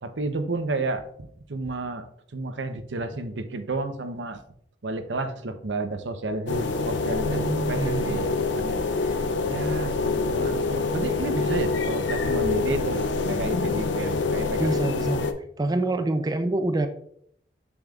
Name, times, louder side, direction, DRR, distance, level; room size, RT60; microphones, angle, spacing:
voice 1, 0.0-4.4 4.8-14.7, right 2 dB, 80° right, 8 dB, 0.7 m, -31 dB
sound 1, 6.5-15.3, left 3 dB, 90° left, 0.6 m, -26 dB
voice 2, 7.2-8.2 14.6-15.3 15.6-16.9, right 2 dB, 20° right, 7 dB, 0.5 m, -26 dB
7.0 x 6.7 x 2.4 m, 0.67 s
head